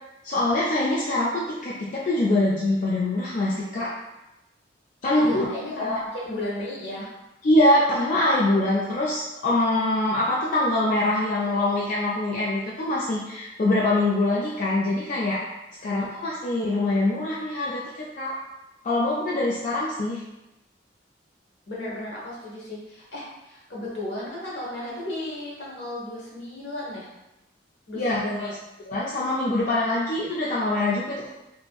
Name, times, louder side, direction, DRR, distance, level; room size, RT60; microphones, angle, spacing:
voice 1, 0.2-3.9 5.0-5.4 5.8-6.0 7.4-15.4 15.8-18.3 18.8-20.2 27.9-28.5 28.9-31.3, left 1 dB, 45° left, -6 dB, 0.4 m, -24 dB
voice 2, 5.1-7.1 15.8-16.2 21.7-27.1 27.9-28.5, left 1 dB, 70° left, -6 dB, 1.0 m, -34 dB
2.8 x 2.5 x 2.3 m, 0.94 s
head